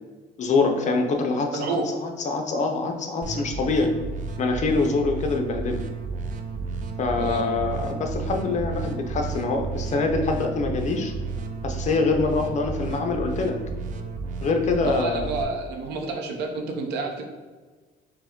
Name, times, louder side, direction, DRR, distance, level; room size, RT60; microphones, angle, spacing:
voice 1, 0.4-1.8 2.0-3.9 4.4-5.8 7.0-11.1 11.6-13.6 14.4-15.4, left 3 dB, 45° left, 3 dB, 0.6 m, -25 dB
voice 2, 1.5-1.9 7.2-7.5 14.8-17.2, right 3 dB, 85° right, 3 dB, 0.8 m, -29 dB
sound 1, 3.2-15.4, right 4 dB, 50° right, 0.5 m, -32 dB
4.7 x 2.2 x 3.6 m, 1.4 s
cardioid pair, 110°, 17 cm